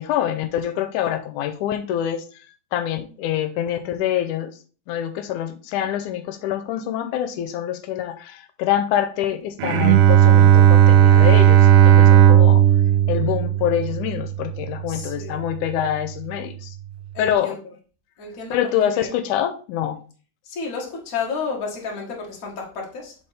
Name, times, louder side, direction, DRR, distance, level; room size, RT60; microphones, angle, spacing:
voice 1, 0.0-2.3 2.7-4.5 4.9-12.6 13.1-16.7 17.2-17.5 18.5-20.0, left 10 dB, 85° left, 2.1 m, -25 dB
Bowed string instrument, 9.6-14.9, right 11 dB, 80° right, 2.0 m, -14 dB
voice 2, 14.9-15.5 17.1-17.6 18.2-18.6 18.8-19.1 20.4-23.1, left 5 dB, 35° left, 1.7 m, -31 dB
7.1 x 5.1 x 3.5 m
omnidirectional pair, 3.5 m